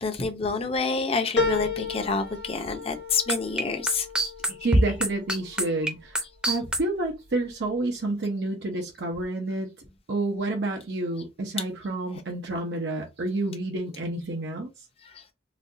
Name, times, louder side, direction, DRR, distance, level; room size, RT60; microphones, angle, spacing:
voice 1, 0.0-4.1 15.1-15.2, left 4 dB, 35° left, 0.7 m, -28 dB
sound 1, 1.4-6.1 6.6-7.3 7.7-7.8, left 4 dB, 85° left, 0.7 m, -33 dB
sound 2, 3.3-6.8, right 1 dB, 5° right, 0.7 m, -23 dB
voice 2, 4.5-9.7 10.1-14.7, right 2 dB, 75° right, 0.7 m, -29 dB
4.1 x 2.3 x 2.7 m
head